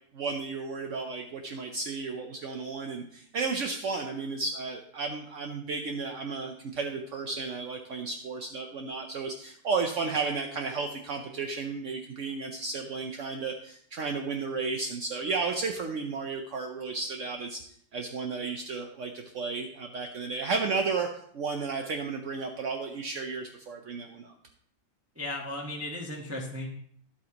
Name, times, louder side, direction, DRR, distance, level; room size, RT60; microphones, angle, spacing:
voice 1, 0.1-17.6 17.9-24.3, right 4 dB, 70° right, 3 dB, 0.7 m, -33 dB
voice 2, 25.1-26.7, left 1 dB, 10° right, -3 dB, 0.8 m, -35 dB
11.0 x 8.5 x 2.9 m, 0.63 s
omnidirectional pair, 2.1 m